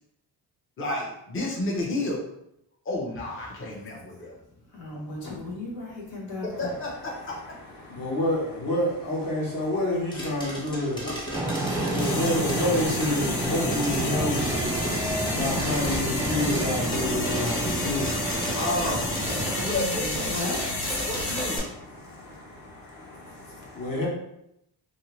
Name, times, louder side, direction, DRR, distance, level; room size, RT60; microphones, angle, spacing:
voice 1, 0.8-2.2 2.9-4.3 6.6-7.4 11.0-11.2 18.5-19.1 19.6-20.3 21.1-21.7, left 2 dB, 30° left, -2 dB, 0.7 m, -31 dB
voice 2, 4.7-6.7 19.5-21.0 23.5-23.6, left 2 dB, 90° left, -4 dB, 1.2 m, -35 dB
voice 3, 7.1-19.8 21.0-24.1, left 1 dB, 50° left, -4 dB, 1.3 m, -30 dB
sound 1, 10.1-21.6, equal, 10° left, 0.9 m, -35 dB
sound 2, 11.3-19.7, right 2 dB, 10° right, 0.3 m, -30 dB
sound 3, 12.0-21.6, left 2 dB, 70° left, 0.8 m, -31 dB
2.8 x 2.7 x 3.0 m, 0.79 s
cardioid pair, 100°, 42 cm